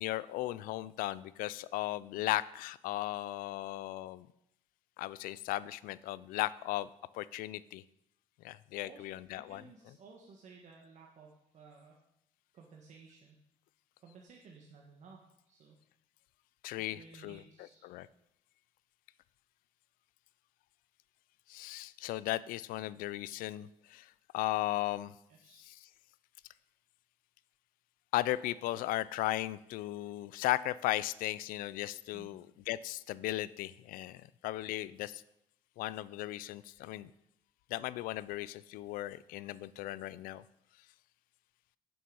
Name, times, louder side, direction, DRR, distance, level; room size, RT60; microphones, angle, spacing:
voice 1, 0.0-4.3 5.0-6.9 7.1-7.8 8.4-9.6 16.6-17.4 17.8-18.1 21.5-24.1 24.3-25.1 25.6-25.8 28.1-35.2 35.8-37.1 37.7-40.4, left 16 dB, 80° left, 18 dB, 0.4 m, -36 dB
voice 2, 8.8-12.0 12.5-13.4 14.0-15.8 16.9-17.9 25.3-25.6 32.1-32.4, right 4 dB, 55° right, 0 dB, 1.5 m, -56 dB
9.2 x 7.0 x 5.5 m, 0.80 s
cardioid pair, 95°, 14 cm